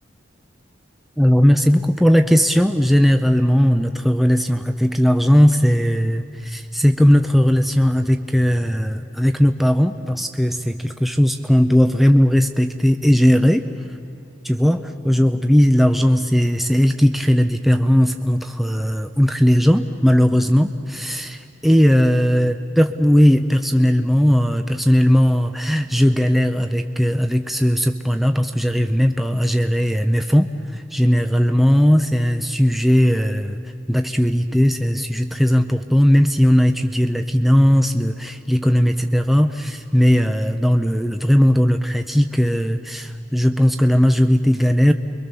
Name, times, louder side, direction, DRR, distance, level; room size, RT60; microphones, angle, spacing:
voice 1, 1.2-13.7 14.4-33.6 33.9-44.9, equal, ahead, 6 dB, 0.6 m, -17 dB
29.5 x 23.5 x 7.0 m, 2.8 s
head